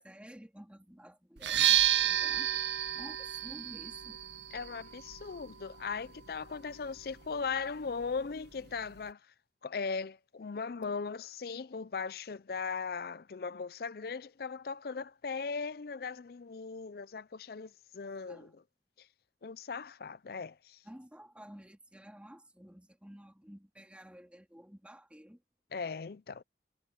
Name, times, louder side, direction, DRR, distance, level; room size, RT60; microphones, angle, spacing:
voice 1, 0.0-2.6 2.9-4.2 18.3-18.5 20.8-25.4, equal, 5° right, 2.6 m, -52 dB
sound 1, 1.4-9.1, right 11 dB, 85° right, 0.9 m, -33 dB
voice 2, 4.5-9.2 9.6-18.6 19.4-20.8 25.7-26.4, left 5 dB, 60° left, 0.5 m, -38 dB
head